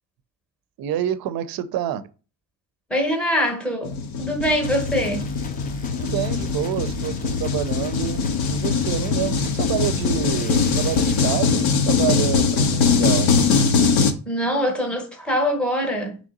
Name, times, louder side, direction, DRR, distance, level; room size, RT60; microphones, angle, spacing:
voice 1, 0.8-2.0 5.9-13.4, right 11 dB, 50° right, 0.5 m, -28 dB
voice 2, 2.9-5.3 14.3-16.2, equal, ahead, 0.7 m, -23 dB
sound 1, 3.8-14.1, left 5 dB, 85° left, 0.8 m, -21 dB
sound 2, 4.6-11.3, equal, 20° left, 0.3 m, -36 dB
3.7 x 3.2 x 3.9 m
cardioid pair, 145°, 46 cm